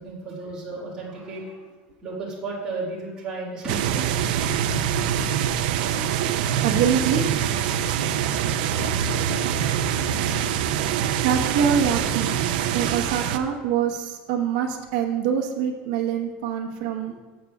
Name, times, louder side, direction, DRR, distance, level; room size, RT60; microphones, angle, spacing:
voice 1, 0.0-1.6 2.0-4.1 5.6-5.7 7.7-7.8, right 3 dB, 15° right, -7 dB, 2.0 m, -34 dB
sound 1, 3.7-13.4, right 9 dB, 85° right, 0.5 m, -24 dB
voice 2, 6.6-7.2 11.2-12.3 12.7-17.1, right 8 dB, 65° right, 2 dB, 1.1 m, -24 dB
14.0 x 8.1 x 2.4 m, 1.3 s
cardioid pair, 180°, 5 cm